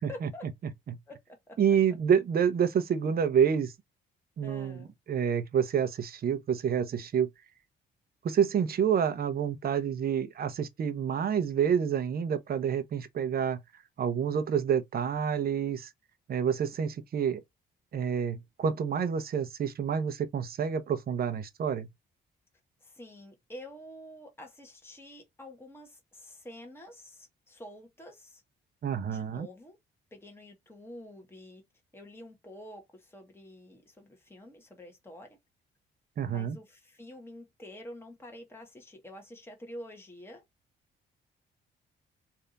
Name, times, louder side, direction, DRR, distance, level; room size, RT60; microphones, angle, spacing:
voice 1, 0.1-0.5 1.1-1.6 4.4-4.9 22.8-28.4 29.0-29.8 30.1-31.6 31.9-35.3 36.3-40.4, left 1 dB, 10° left, 1.4 m, -48 dB
voice 2, 1.6-3.7 4.4-4.8 5.1-7.3 8.2-13.6 14.0-15.9 16.3-17.4 17.9-21.9 28.8-29.5 36.2-36.6, right 8 dB, 50° right, 0.8 m, -28 dB
3.4 x 2.7 x 3.9 m
cardioid pair, 90°, 20 cm